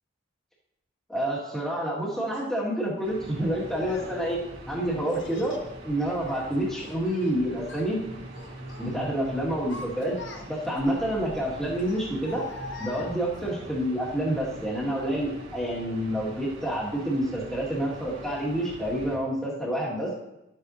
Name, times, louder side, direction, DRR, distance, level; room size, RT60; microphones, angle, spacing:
voice 1, 1.1-4.4 4.7-5.6 5.8-8.0 8.8-10.2 10.5-12.4 12.8-20.1, right 1 dB, 5° left, -6 dB, 1.9 m, -28 dB
Child speech kid speaking, 2.3-2.5 3.4-4.1 5.1-5.7 6.1-7.3 7.6-7.9 8.3-8.9 9.4-10.8 11.8-13.5, left 3 dB, 60° left, 1.0 m, -43 dB
sound 1, 3.0-19.2, right 1 dB, 55° right, 2.3 m, -43 dB
11.5 x 7.7 x 2.8 m, 0.91 s
head